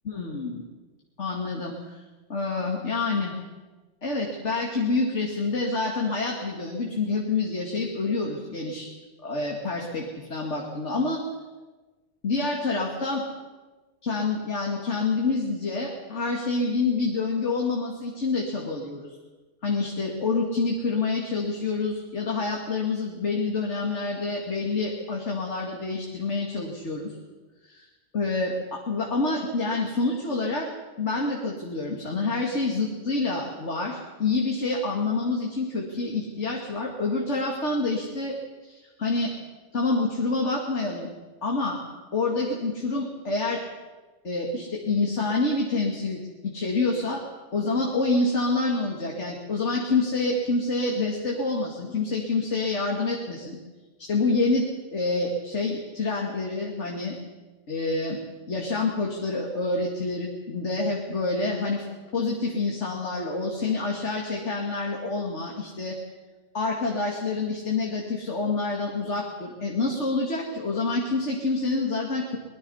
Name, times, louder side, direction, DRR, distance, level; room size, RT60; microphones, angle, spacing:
voice 1, 0.0-0.6 1.2-2.0 2.3-3.3 4.0-8.9 9.2-11.2 12.2-13.2 14.0-19.1 19.6-27.1 27.7-27.8 28.1-30.7 31.0-39.3 39.7-41.1 41.4-41.8 42.1-43.6 44.2-47.2 47.5-53.6 54.0-57.1 57.7-58.2 58.5-61.9 62.1-66.0 66.5-72.4, left 3 dB, 75° left, -1 dB, 2.6 m, -27 dB
23.0 x 20.5 x 5.6 m, 1.3 s
omnidirectional pair, 1.2 m